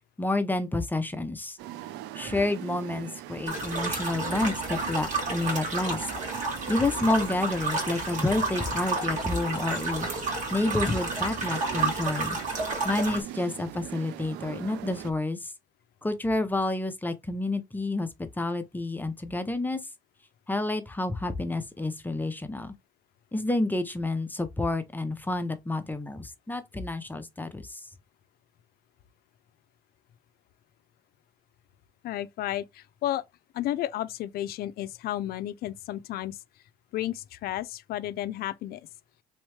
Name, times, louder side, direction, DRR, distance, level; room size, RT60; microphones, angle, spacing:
voice 1, 0.2-1.6 2.1-6.1 6.7-12.4 12.8-15.5 16.0-18.1 18.4-19.8 20.5-22.7 23.3-27.8, left 2 dB, 10° left, 0.6 m, -29 dB
sound 1, 1.6-15.1, right 13 dB, 90° right, 0.4 m, -41 dB
sound 2, 3.5-13.2, right 3 dB, 45° right, 1.7 m, -31 dB
voice 2, 32.0-33.2 33.5-36.4 36.9-38.8, left 13 dB, 65° left, 0.4 m, -32 dB
3.5 x 3.1 x 3.2 m
cardioid pair, 110°, 17 cm